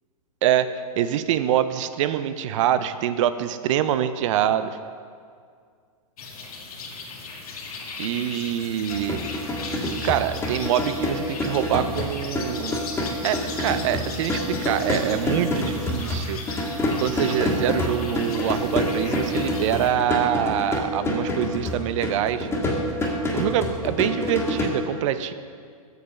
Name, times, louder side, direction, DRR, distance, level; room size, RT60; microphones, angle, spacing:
voice 1, 0.4-4.8 8.0-9.2 10.0-12.8 13.2-22.5 23.3-25.3, right 10 dB, 55° right, 12 dB, 0.5 m, -25 dB
sound 1, 6.2-19.9, left 4 dB, 75° left, 1.7 m, -37 dB
sound 2, 8.9-24.7, left 1 dB, 15° left, 1.7 m, -27 dB
8.2 x 6.9 x 5.4 m, 2.1 s
hypercardioid pair, 125°, 19 cm